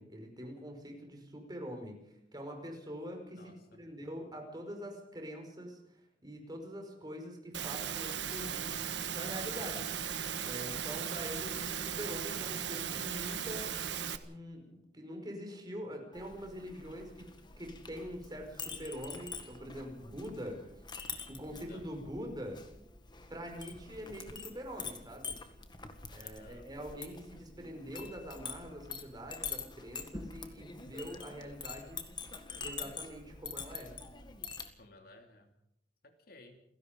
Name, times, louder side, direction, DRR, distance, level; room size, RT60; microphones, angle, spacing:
voice 1, 0.0-5.8 6.2-8.7 9.1-9.9 10.4-13.8 14.2-17.3 17.6-20.6 21.3-22.6 23.3-25.4 26.1-32.0 32.6-33.9, equal, 25° right, 3 dB, 5.2 m, -44 dB
voice 2, 3.3-3.9 21.4-21.9 26.2-26.7 34.8-35.5 36.0-36.6, left 2 dB, 55° left, 5 dB, 2.8 m, -57 dB
Engine / Mechanisms, 7.5-14.2, right 8 dB, 80° right, 1.4 m, -37 dB
Chink clink, 16.1-34.7, left 5 dB, 25° left, 1.8 m, -46 dB
29.0 x 17.0 x 5.3 m, 0.77 s
head